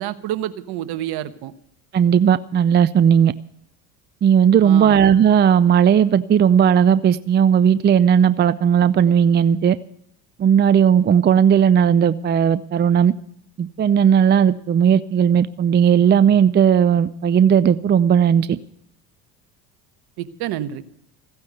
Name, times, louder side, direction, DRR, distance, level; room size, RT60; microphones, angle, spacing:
voice 1, 0.0-1.5 4.6-4.9 20.2-20.8, right 12 dB, 60° right, 1.2 m, -28 dB
voice 2, 1.9-3.3 4.2-9.8 10.4-13.1 13.6-18.6, right 8 dB, 25° right, 0.5 m, -16 dB
15.5 x 9.6 x 8.0 m
hypercardioid pair, 65°, 44 cm